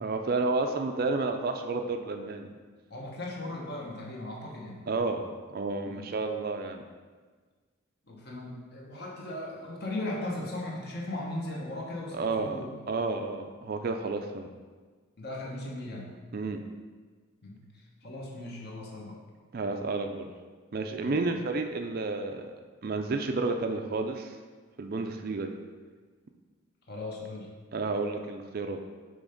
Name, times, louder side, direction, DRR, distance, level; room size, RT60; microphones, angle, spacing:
voice 1, 0.0-2.5 4.9-6.8 12.1-12.6 12.9-14.5 16.3-16.6 19.5-20.3 20.7-22.5 22.8-24.4 24.8-25.6 27.7-28.8, right 3 dB, 45° right, 5 dB, 0.4 m, -31 dB
voice 2, 2.9-4.8 5.8-6.1 8.1-12.7 15.2-16.1 17.4-17.6 18.0-19.2 21.0-21.2 26.9-27.5, left 1 dB, 50° left, -2 dB, 1.1 m, -37 dB
6.1 x 3.3 x 5.1 m, 1.5 s
head